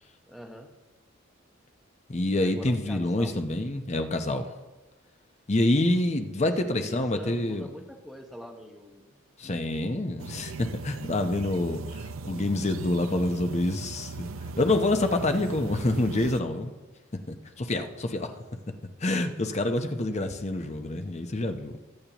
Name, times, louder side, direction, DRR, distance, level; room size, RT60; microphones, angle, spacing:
voice 1, 0.3-0.7 2.4-3.4 6.7-9.2, equal, ahead, 2 dB, 1.1 m, -43 dB
voice 2, 2.1-4.5 5.5-7.7 9.4-16.8 17.3-18.3 19.0-21.8, left 2 dB, 35° left, 6 dB, 0.8 m, -27 dB
sound 1, 10.2-16.4, right 4 dB, 75° right, 0.5 m, -39 dB
20.5 x 8.6 x 3.0 m, 1.2 s
head